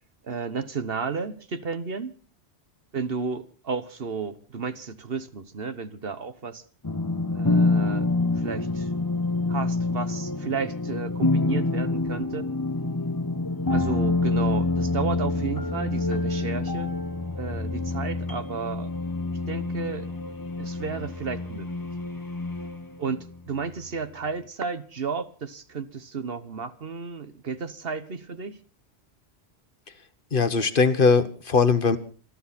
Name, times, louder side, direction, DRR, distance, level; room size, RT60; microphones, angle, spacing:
voice 1, 0.2-2.1 2.9-6.6 7.3-8.1 8.3-8.9 9.5-12.5 13.7-16.9 17.4-18.9 19.3-20.1 20.6-21.7 23.0-28.6, right 5 dB, 60° right, 1.4 m, -33 dB
sound 1, 6.8-23.4, left 3 dB, 20° left, 1.0 m, -27 dB
voice 2, 30.3-32.0, left 4 dB, 55° left, 1.3 m, -20 dB
27.5 x 12.0 x 4.2 m
omnidirectional pair, 1.1 m